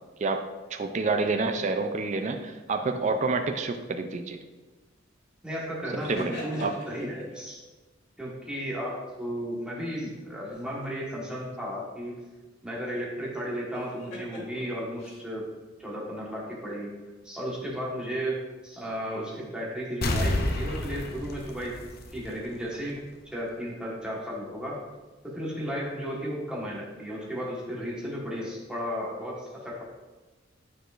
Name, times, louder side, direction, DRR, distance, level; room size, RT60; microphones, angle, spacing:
voice 1, 0.7-4.4 6.1-6.7, right 3 dB, 40° right, 6 dB, 0.4 m, -28 dB
voice 2, 5.4-7.6 8.2-12.2 12.6-15.5 15.8-16.9 17.2-21.8 22.1-24.8 25.2-29.8, equal, 5° right, -5 dB, 1.3 m, -34 dB
sound 1, 6.0-7.4 10.4-11.1 13.7-15.3, left 1 dB, 80° left, 1.8 m, -43 dB
sound 2, 20.0-22.6 23.0-23.1, left 1 dB, 55° left, 0.6 m, -29 dB
8.9 x 4.7 x 2.5 m, 1.2 s
head